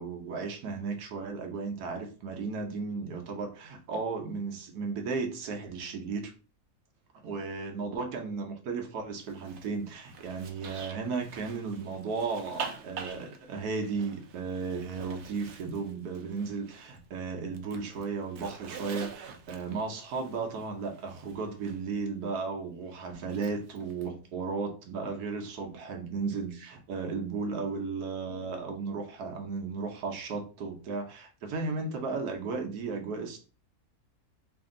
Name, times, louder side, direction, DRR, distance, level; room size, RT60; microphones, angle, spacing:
voice 1, 0.0-6.3 7.2-33.4, right 4 dB, 80° right, 3 dB, 1.4 m, -35 dB
Zipper (clothing), 9.2-17.1 17.4-21.8 23.2-24.1, right 5 dB, 60° right, 0.7 m, -46 dB
3.4 x 2.6 x 3.7 m, 0.35 s
omnidirectional pair, 1.6 m